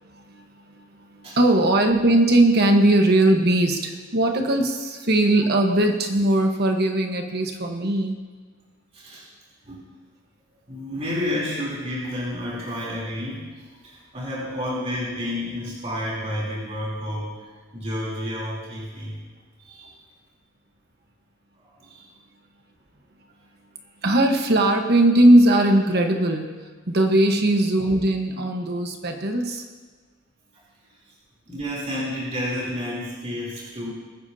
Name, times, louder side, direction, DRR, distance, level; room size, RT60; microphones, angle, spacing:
voice 1, 1.4-8.2 24.0-26.5 26.9-29.6, right 1 dB, 55° right, 4 dB, 1.3 m, -19 dB
voice 2, 8.9-9.2 9.7-9.8 10.7-19.2 19.6-20.0 21.7-22.0 31.5-33.9, left 1 dB, 35° right, -6 dB, 3.5 m, -30 dB
21.5 x 10.0 x 2.8 m, 1.5 s
head